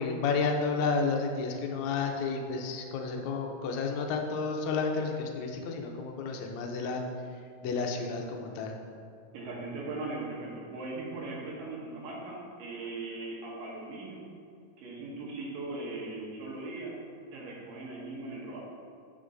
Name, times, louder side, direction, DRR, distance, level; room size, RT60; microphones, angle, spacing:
voice 1, 0.0-7.0 7.6-8.7, left 4 dB, 80° left, 2 dB, 1.6 m, -31 dB
voice 2, 9.3-14.2 14.8-16.9 17.3-18.6, right 2 dB, 85° right, -4 dB, 2.9 m, -39 dB
7.9 x 6.7 x 2.6 m, 2.3 s
omnidirectional pair, 3.9 m